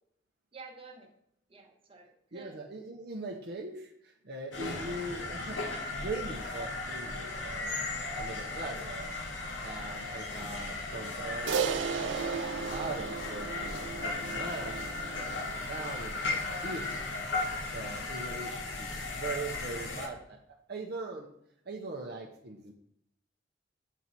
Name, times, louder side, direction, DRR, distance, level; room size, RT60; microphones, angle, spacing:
voice 1, 0.5-1.1 1.5-2.6 8.7-9.1 18.7-19.0, right 3 dB, 30° right, 1 dB, 1.3 m, -51 dB
voice 2, 2.3-7.8 8.1-9.1 9.6-17.0 17.6-20.4 20.7-21.3 21.7-22.7, right 2 dB, 60° right, 0 dB, 0.8 m, -41 dB
sound 1, 4.5-20.1, left 3 dB, 90° left, 1.4 m, -36 dB
Crash cymbal, 11.5-16.0, right 6 dB, 85° right, 0.5 m, -35 dB
8.0 x 4.5 x 4.1 m, 0.75 s
head